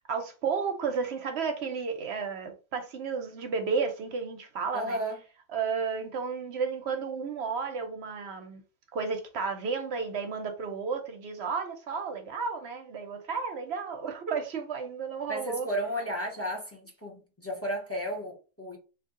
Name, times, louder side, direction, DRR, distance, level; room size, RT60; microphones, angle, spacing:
voice 1, 0.1-5.0 5.5-8.6 8.9-15.7, right 5 dB, 60° right, 0.8 m, -32 dB
voice 2, 4.7-5.2 15.3-18.8, right 1 dB, 15° left, 0.8 m, -33 dB
2.6 x 2.6 x 3.6 m
omnidirectional pair, 1.4 m